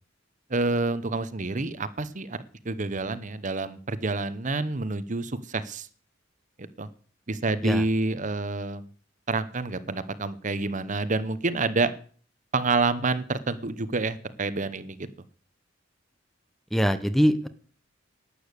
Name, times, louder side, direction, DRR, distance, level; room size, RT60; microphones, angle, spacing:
voice 1, 0.5-2.4 2.6-5.9 6.6-6.9 7.3-8.9 9.3-11.9 12.5-15.1, right 3 dB, 40° right, 14 dB, 1.0 m, -28 dB
voice 2, 16.7-17.5, equal, ahead, 12 dB, 0.9 m, -22 dB
12.0 x 8.6 x 8.3 m, 0.43 s
head